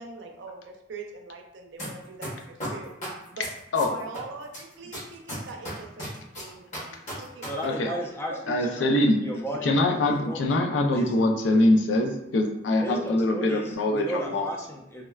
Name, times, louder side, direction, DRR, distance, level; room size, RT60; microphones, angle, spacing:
voice 1, 0.0-2.9 3.3-3.5 3.8-7.4 7.9-8.6, right 3 dB, 80° right, 2 dB, 0.5 m, -42 dB
sound 1, 1.8-1.9 2.2-4.2 4.5-7.5 7.7-7.8, equal, 40° left, 1.0 m, -35 dB
voice 2, 7.4-10.4 10.9-11.1 12.8-15.0, equal, 15° left, -1 dB, 0.4 m, -35 dB
voice 3, 8.5-9.2 9.6-14.5, left 1 dB, 80° left, 3 dB, 0.4 m, -23 dB
3.5 x 2.1 x 2.3 m, 0.88 s
head